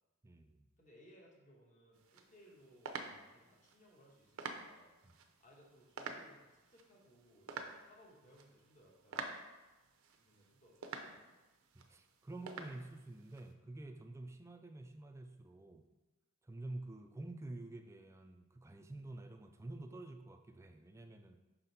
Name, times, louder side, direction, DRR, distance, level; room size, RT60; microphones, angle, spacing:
voice 1, 0.2-0.7 5.0-5.2 11.7-15.8 16.4-21.4, right 2 dB, 15° right, 6 dB, 0.3 m, -49 dB
voice 2, 0.8-4.9 5.4-9.3 10.1-11.4, equal, 35° left, -3 dB, 1.3 m, -64 dB
sound 1, 1.9-13.5, right 4 dB, 75° right, 0.6 m, -50 dB
5.7 x 4.1 x 4.0 m, 1.1 s
head